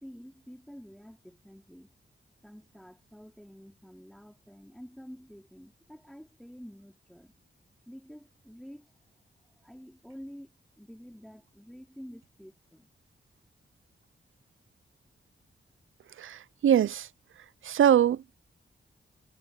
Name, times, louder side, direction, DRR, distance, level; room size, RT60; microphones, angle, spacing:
voice 1, 0.0-1.9 2.4-7.3 7.9-9.0 9.6-12.9, equal, ahead, 3.4 m, -49 dB
voice 2, 16.2-17.1 17.6-18.2, right 10 dB, 90° right, 0.5 m, -23 dB
cardioid pair, 75°, 20 cm